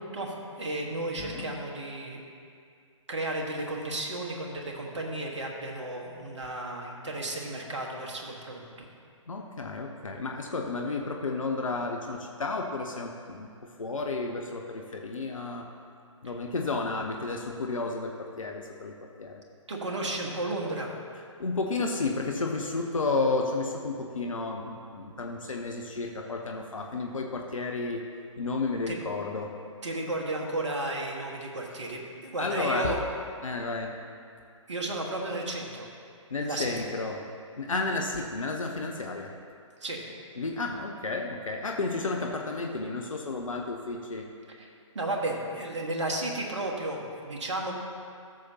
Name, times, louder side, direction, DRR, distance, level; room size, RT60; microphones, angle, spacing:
voice 1, 0.0-2.2 3.1-8.6 17.6-17.7 19.7-20.9 28.9-29.0 29.8-33.0 34.7-35.9 36.4-36.8 39.8-40.0 44.5-44.7 44.9-47.7, right 2 dB, 65° right, 0 dB, 1.5 m, -33 dB
voice 2, 1.2-1.5 9.3-15.7 16.2-19.4 21.4-28.0 28.4-29.5 32.4-33.0 33.4-33.9 36.3-37.2 37.6-39.3 40.4-44.3, left 3 dB, 80° left, 1 dB, 0.8 m, -32 dB
14.0 x 6.6 x 2.8 m, 2.3 s
figure-of-eight pair, 130°, 17 cm